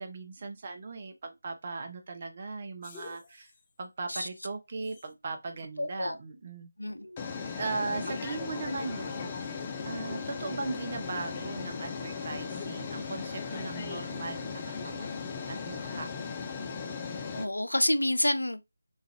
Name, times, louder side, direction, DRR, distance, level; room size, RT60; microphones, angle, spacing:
voice 1, 0.0-3.5 3.8-6.7 7.5-9.5 9.8-15.2 15.5-16.1, right 3 dB, 35° right, 0.7 m, -38 dB
sound 1, 2.8-3.3 5.0-5.1 7.2-17.5, left 5 dB, 20° left, 0.4 m, -37 dB
voice 2, 5.8-6.2 6.8-7.2 17.3-18.6, left 1 dB, 80° left, 0.4 m, -28 dB
3.1 x 2.4 x 2.6 m
figure-of-eight pair, 160°, 0 cm